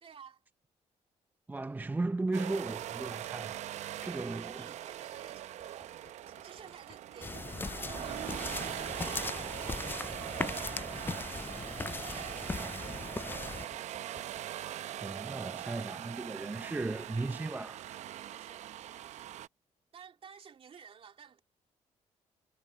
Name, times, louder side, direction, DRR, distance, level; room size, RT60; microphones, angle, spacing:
voice 1, 0.0-0.4 4.0-11.4 11.8-12.4 13.1-14.1 18.3-18.7 19.9-21.4, right 7 dB, 50° right, 2.7 m, -53 dB
voice 2, 1.5-3.6 4.0-4.7 11.9-12.0 12.6-12.9 15.0-17.9, right 2 dB, 15° right, 0.7 m, -36 dB
sound 1, 2.3-19.5, right 12 dB, 80° right, 0.6 m, -41 dB
sound 2, 5.6-11.7 12.0-14.4, left 7 dB, 50° left, 1.9 m, -57 dB
sound 3, 7.2-13.7, left 3 dB, 20° left, 0.3 m, -39 dB
cardioid pair, 90°, 12 cm